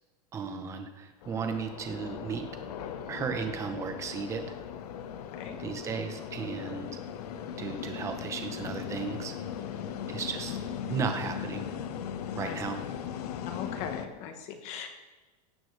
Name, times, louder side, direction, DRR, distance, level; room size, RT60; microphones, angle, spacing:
voice 1, 0.3-2.5 3.1-4.4 5.6-7.0 7.6-9.4 10.1-10.6 10.9-11.6 12.4-12.8, right 5 dB, 15° right, 6 dB, 0.8 m, -35 dB
sound 1, 1.2-14.1, left 8 dB, 75° left, 1.1 m, -38 dB
voice 2, 13.4-14.9, left 7 dB, 35° left, 6 dB, 1.2 m, -40 dB
17.0 x 13.0 x 3.3 m, 1.2 s
supercardioid pair, 180°, 20 cm